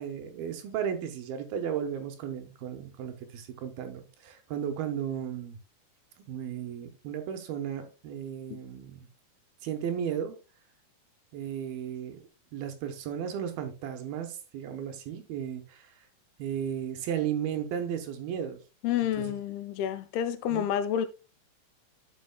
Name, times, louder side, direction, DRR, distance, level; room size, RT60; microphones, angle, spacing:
voice 1, 0.0-5.6 6.3-9.1 9.6-10.4 11.3-12.2 12.5-15.9 16.4-18.6 19.2-19.4 20.5-20.7, right 9 dB, 80° right, 2.8 m, -34 dB
voice 2, 18.8-21.1, left 10 dB, 85° left, 2.6 m, -29 dB
12.0 x 5.3 x 2.3 m
omnidirectional pair, 4.4 m